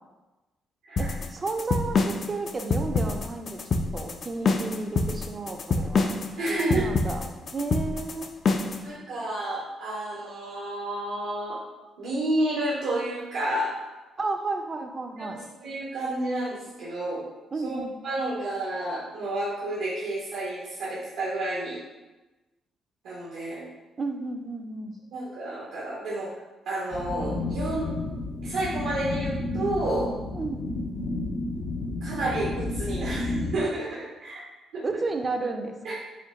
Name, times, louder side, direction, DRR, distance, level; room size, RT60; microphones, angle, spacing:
sound 1, 1.0-8.8, left 3 dB, 50° left, 0.3 m, -26 dB
voice 1, 1.0-3.6 3.9-6.1 6.6-8.3 14.2-15.5 17.5-17.9 24.0-25.0 30.3-30.7 34.8-35.9, right 3 dB, 35° right, 5 dB, 0.4 m, -32 dB
voice 2, 6.4-6.9 8.8-11.6 12.0-13.7 15.2-17.3 17.6-17.8 18.0-21.8 23.0-23.7 25.1-26.3 26.7-27.9 28.4-30.1 32.0-34.4 34.7-34.8 35.8-35.9, right 1 dB, 90° right, -8 dB, 1.0 m, -30 dB
sound 2, 26.9-33.5, left 2 dB, 70° left, 0.8 m, -31 dB
4.3 x 2.2 x 3.6 m, 1.1 s
cardioid pair, 90°, 0 cm